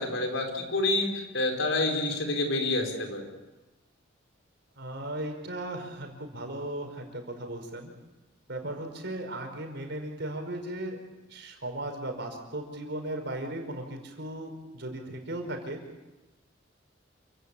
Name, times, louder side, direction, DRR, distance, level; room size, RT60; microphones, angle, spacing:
voice 1, 0.0-3.2, left 2 dB, 80° left, 3 dB, 4.8 m, -28 dB
voice 2, 4.8-7.9 8.5-11.0 11.3-15.8, right 1 dB, 60° right, 4 dB, 5.1 m, -36 dB
29.0 x 16.5 x 8.5 m, 1.1 s
head